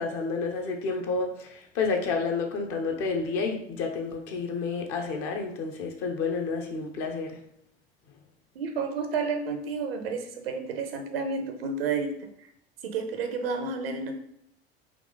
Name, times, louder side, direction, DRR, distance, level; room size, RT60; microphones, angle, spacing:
voice 1, 0.0-7.4, left 4 dB, 50° left, 3 dB, 0.8 m, -30 dB
voice 2, 8.5-12.1 12.8-14.1, right 4 dB, 70° right, 6 dB, 0.7 m, -30 dB
3.6 x 2.9 x 3.8 m, 0.76 s
figure-of-eight pair, 70°, 31 cm